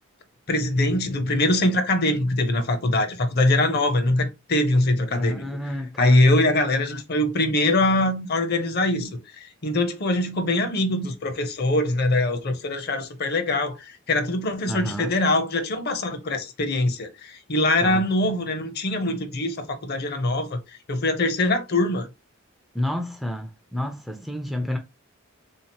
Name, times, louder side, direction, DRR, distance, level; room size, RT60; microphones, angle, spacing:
voice 1, 0.5-5.5 6.0-20.6 20.9-22.1, left 1 dB, 45° left, 0.6 m, -23 dB
voice 2, 5.1-6.2 14.7-15.1 17.8-18.0 22.7-24.8, left 1 dB, ahead, 0.3 m, -29 dB
3.6 x 2.8 x 2.8 m
head